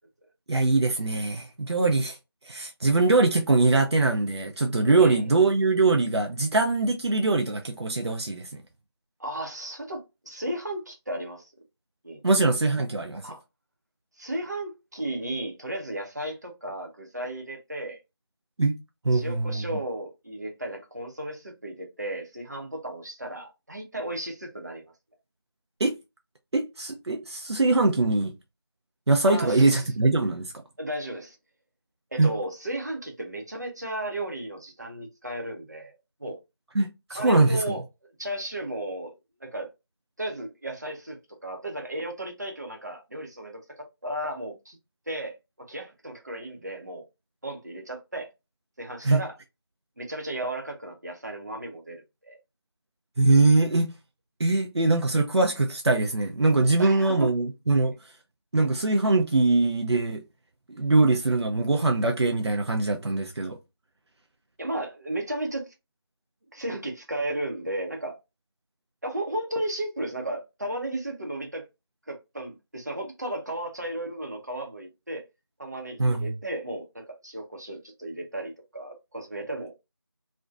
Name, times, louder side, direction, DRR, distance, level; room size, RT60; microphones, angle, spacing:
voice 1, 0.5-2.2 2.4-8.5 12.2-13.3 18.6-18.7 19.0-19.6 25.8-25.9 26.5-28.3 29.1-30.5 32.2-32.3 36.7-37.6 49.0-49.2 53.2-53.9 54.4-57.9 58.5-60.2 60.7-63.6 76.0-76.3, right 3 dB, 85° right, 0.5 m, -22 dB
voice 2, 9.2-11.5 12.0-12.2 13.2-13.4 14.2-18.0 19.1-24.9 29.3-29.8 30.8-31.4 32.1-35.9 36.2-36.4 37.1-37.8 38.2-39.7 40.2-44.8 45.1-47.0 47.4-48.3 48.8-49.3 50.0-52.4 56.8-57.3 64.6-65.7 66.5-68.2 69.0-71.6 72.1-75.2 75.6-79.8, right 1 dB, 40° right, 0.6 m, -34 dB
2.5 x 2.2 x 2.3 m
figure-of-eight pair, 175°, 14 cm